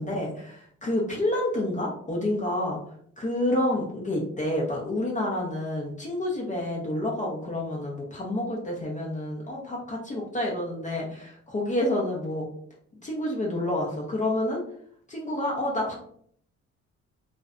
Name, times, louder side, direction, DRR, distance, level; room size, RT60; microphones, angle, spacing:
voice 1, 0.0-2.8 3.2-12.5 13.0-14.6 15.1-15.9, left 1 dB, 25° left, -3 dB, 0.5 m, -29 dB
2.5 x 2.1 x 2.4 m, 0.64 s
cardioid pair, 90°, 30 cm